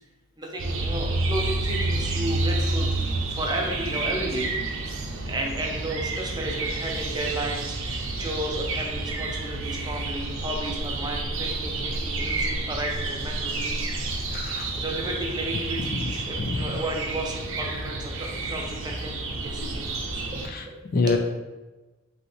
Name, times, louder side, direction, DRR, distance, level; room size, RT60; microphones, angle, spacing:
voice 1, 0.4-2.9 3.3-4.5 5.3-13.9 14.3-19.9 20.3-21.2, right 1 dB, 20° right, 0 dB, 0.7 m, -33 dB
sound 1, 0.6-20.5, right 2 dB, 65° right, 0.7 m, -29 dB
voice 2, 14.3-14.7 16.0-16.1 16.4-16.6 20.5-20.6 20.9-21.2, left 4 dB, 45° left, 5 dB, 0.4 m, -25 dB
5.3 x 3.1 x 3.2 m, 1.2 s
head